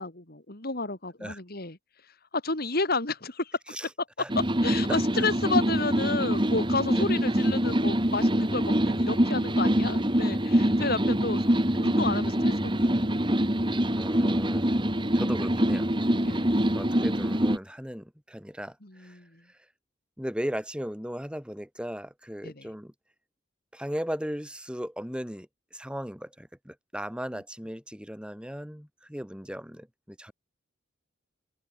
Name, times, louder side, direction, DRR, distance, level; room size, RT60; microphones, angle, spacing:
voice 1, 0.0-1.8 2.3-3.6 4.3-11.4 11.7-13.5 16.2-16.6 18.8-19.4 22.4-22.6, left 3 dB, 50° left, 3.0 m, -31 dB
sound 1, 4.3-17.6, right 1 dB, 25° right, 2.5 m, -25 dB
voice 2, 13.9-14.8 15.1-15.9 16.7-19.2 19.5-19.6 20.2-22.9 23.7-30.3, equal, 5° right, 5.0 m, -37 dB
open air
head